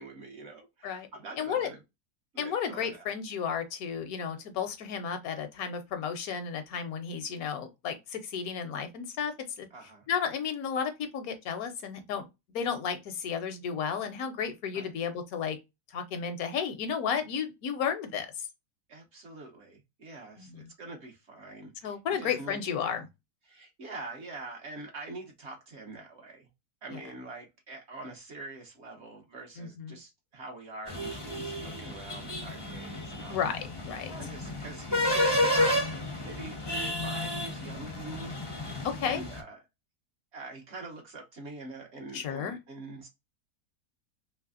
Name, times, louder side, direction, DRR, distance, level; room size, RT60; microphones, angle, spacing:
voice 1, 0.0-1.8 2.3-3.1 9.7-10.1 14.7-14.9 18.9-23.0 23.5-26.5 26.8-33.6 34.2-35.8 36.2-36.6 37.0-38.3 39.0-39.6 40.3-43.1, right 3 dB, 50° right, 1.0 m, -44 dB
voice 2, 1.4-1.7 2.4-9.7 10.1-12.2 12.5-15.6 15.9-18.3 20.4-20.6 21.8-23.0 29.6-30.0 33.3-34.1 38.8-39.2 42.1-42.6, left 7 dB, 75° left, 1.1 m, -33 dB
sound 1, 30.9-39.4, left 1 dB, 25° left, 0.5 m, -31 dB
3.2 x 3.1 x 2.3 m
omnidirectional pair, 1.7 m